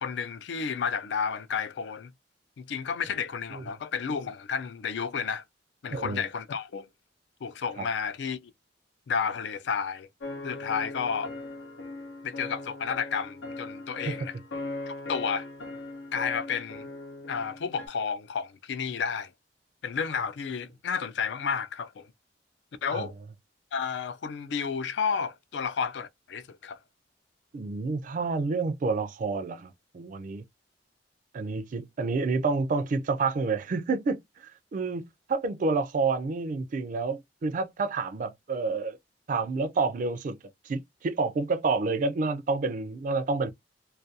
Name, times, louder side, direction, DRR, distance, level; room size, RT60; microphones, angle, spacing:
voice 1, 0.0-2.1 2.6-5.4 5.8-6.9 7.4-8.5 9.1-10.1 10.4-11.3 12.2-14.3 14.9-15.5 16.1-16.9 17.3-19.3 19.8-22.1 22.8-23.1 23.7-26.8, left 6 dB, 70° left, 0.4 m, -31 dB
voice 2, 5.9-6.2 14.1-14.2 22.9-23.1 27.5-30.4 31.3-35.0 35.3-39.0 39.3-40.4 40.7-43.5, right 4 dB, 45° right, 0.3 m, -29 dB
sound 1, 10.2-17.9, left 2 dB, 90° left, 0.7 m, -39 dB
2.4 x 2.2 x 2.7 m
head